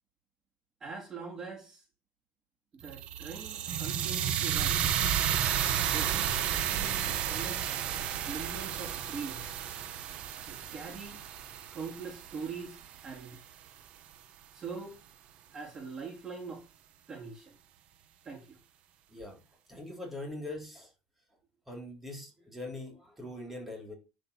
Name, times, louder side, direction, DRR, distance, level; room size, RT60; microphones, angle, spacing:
voice 1, 0.8-1.8 2.7-5.0 5.9-7.6 8.3-9.6 10.4-11.2 11.7-13.4 14.5-15.0 15.5-16.7 17.1-17.6 18.2-18.6, right 5 dB, 20° right, 3.3 m, -42 dB
sound 1, 2.8-13.0, right 9 dB, 50° right, 1.5 m, -32 dB
voice 2, 19.1-19.4 19.7-20.9 21.7-23.9, left 1 dB, 5° right, 4.1 m, -42 dB
11.5 x 5.2 x 7.3 m
cardioid pair, 150°, 3 cm